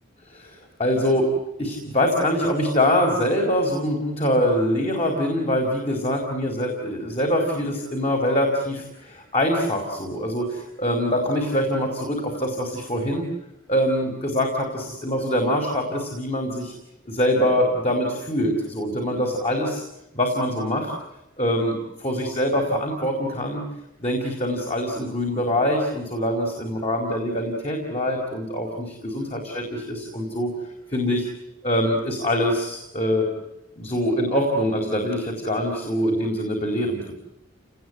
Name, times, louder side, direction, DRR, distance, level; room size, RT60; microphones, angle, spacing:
voice 1, 0.3-1.3 1.6-13.3 13.7-16.7 17.1-19.8 20.1-20.9 21.4-23.6 24.0-30.5 30.9-31.3 31.6-33.3 33.8-37.1, equal, 30° left, 1 dB, 4.6 m, -24 dB
29.5 x 20.0 x 9.6 m, 0.92 s
head